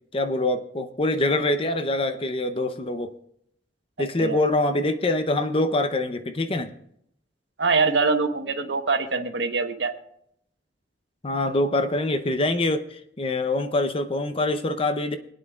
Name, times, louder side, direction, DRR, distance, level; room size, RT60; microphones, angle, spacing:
voice 1, 0.1-3.1 4.0-6.7 11.2-15.2, left 2 dB, 30° left, 9 dB, 0.7 m, -24 dB
voice 2, 7.6-9.9, right 4 dB, 90° right, 7 dB, 1.0 m, -23 dB
26.5 x 9.3 x 2.4 m, 0.73 s
head